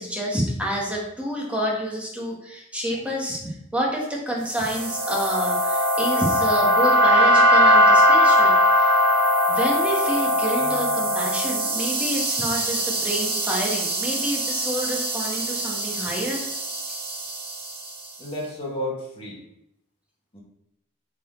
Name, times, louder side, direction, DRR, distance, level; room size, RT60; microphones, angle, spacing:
voice 1, 0.0-8.9 9.5-16.4, equal, 5° right, -3 dB, 1.5 m, -28 dB
sound 1, 4.5-17.9, equal, 55° right, 1.5 m, -21 dB
voice 2, 10.6-11.0 18.2-19.4 20.3-20.4, left 1 dB, 30° left, -4 dB, 1.9 m, -33 dB
8.4 x 4.2 x 3.9 m, 0.80 s
head